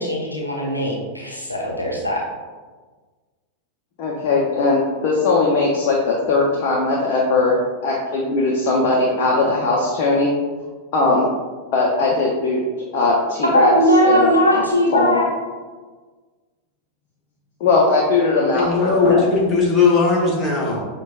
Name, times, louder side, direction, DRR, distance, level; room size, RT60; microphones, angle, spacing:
voice 1, 0.0-2.2 13.5-15.2, equal, 85° left, -3 dB, 0.6 m, -19 dB
voice 2, 4.0-7.6 7.8-10.3 10.9-11.3 11.7-12.6 12.9-13.7 14.0-14.6 14.9-15.2 17.6-19.3, left 3 dB, 45° left, -3 dB, 0.5 m, -19 dB
voice 3, 18.5-20.9, left 4 dB, 20° left, -4 dB, 1.0 m, -18 dB
6.0 x 2.2 x 2.4 m, 1.4 s
figure-of-eight pair, 90°, 0 cm